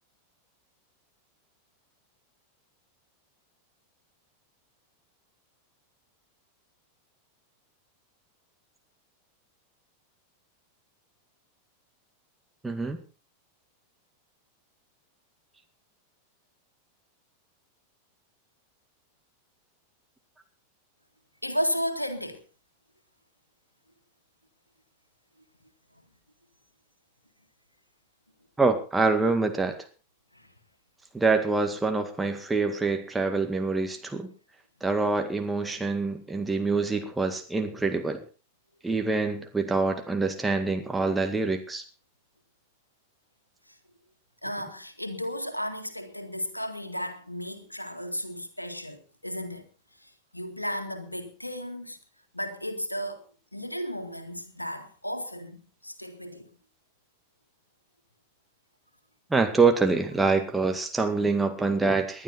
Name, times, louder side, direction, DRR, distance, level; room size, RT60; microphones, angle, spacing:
voice 1, 12.6-13.0 28.6-29.8 31.1-34.3 34.8-38.2 38.8-41.8 59.3-62.2, right 3 dB, 10° right, 2.0 m, -25 dB
voice 2, 21.4-22.4 30.3-30.5 44.4-49.7 50.0-52.0 52.3-53.3 53.5-56.5, equal, 85° left, 2.0 m, -34 dB
20.0 x 11.5 x 4.2 m
figure-of-eight pair, 90°, 0 cm